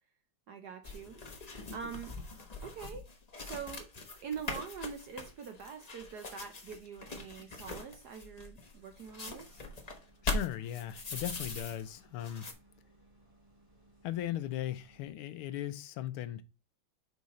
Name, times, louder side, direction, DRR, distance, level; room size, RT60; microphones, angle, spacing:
voice 1, 0.5-1.2 1.7-2.1 2.6-3.1 3.4-3.9 4.2-9.6, right 6 dB, 65° right, 1.0 m, -44 dB
sound 1, 0.8-11.9 12.2-12.5, left 3 dB, 50° left, 0.4 m, -41 dB
sound 2, 8.9-15.1, right 1 dB, 10° left, 2.7 m, -64 dB
voice 2, 10.2-12.5 14.0-16.4, left 12 dB, 80° left, 1.5 m, -38 dB
6.3 x 4.7 x 4.1 m
omnidirectional pair, 2.4 m